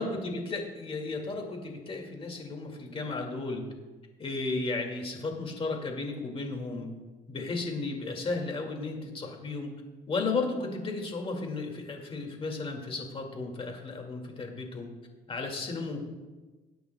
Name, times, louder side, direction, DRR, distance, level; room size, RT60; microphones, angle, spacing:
voice 1, 0.0-3.6 4.2-6.9 7.3-9.7 10.1-14.9 15.3-16.0, left 3 dB, 35° left, 2 dB, 2.2 m, -34 dB
20.0 x 9.4 x 2.3 m, 1.3 s
cardioid pair, 110°, 17 cm